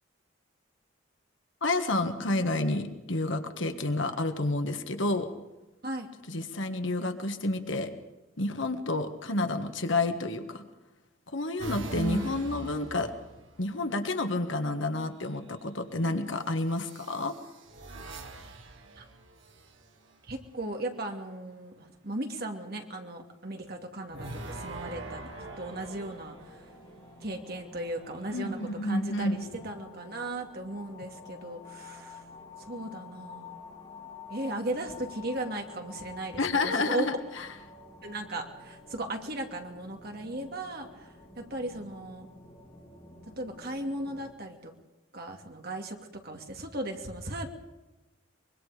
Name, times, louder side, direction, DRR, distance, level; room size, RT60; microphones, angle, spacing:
voice 1, 1.6-5.3 6.3-7.9 8.4-10.6 11.3-13.1 13.6-17.3 28.3-29.4 36.4-37.5, left 2 dB, 65° left, 7 dB, 1.6 m, -30 dB
sound 1, 11.6-13.8 15.1-15.6 16.7-20.1 24.1-27.0 27.8-29.6, right 2 dB, 70° right, 2.3 m, -44 dB
voice 2, 11.9-12.4 19.0-19.1 20.3-26.7 27.2-32.3 32.7-33.6 34.3-37.1 38.0-42.3 43.4-44.7 45.1-46.0 46.2-47.5, right 1 dB, 50° right, 3 dB, 2.5 m, -37 dB
sound 2, 24.6-44.3, left 4 dB, 20° left, 3.8 m, -50 dB
24.0 x 23.0 x 5.1 m, 1.1 s
head